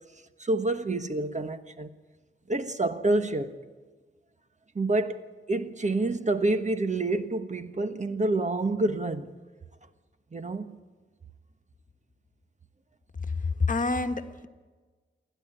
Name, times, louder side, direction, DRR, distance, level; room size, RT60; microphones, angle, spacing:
voice 1, 0.4-1.9 2.5-3.6 4.7-5.2 5.5-9.4 10.3-10.8, right 2 dB, 35° right, 1.3 m, -28 dB
voice 2, 13.2-14.5, left 3 dB, 40° left, 1.5 m, -28 dB
28.5 x 11.5 x 8.8 m
cardioid pair, 60°, 20 cm